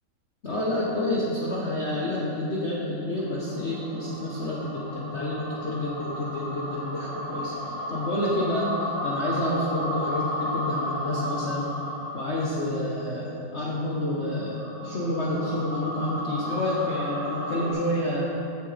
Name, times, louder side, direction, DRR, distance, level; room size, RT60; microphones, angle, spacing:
voice 1, 0.4-11.7 12.1-18.2, left 1 dB, 40° left, -6 dB, 1.3 m, -29 dB
sound 1, 3.1-12.9 14.0-17.7, left 1 dB, 85° right, 2.5 m, -34 dB
16.0 x 7.6 x 3.4 m, 2.7 s
omnidirectional pair, 2.0 m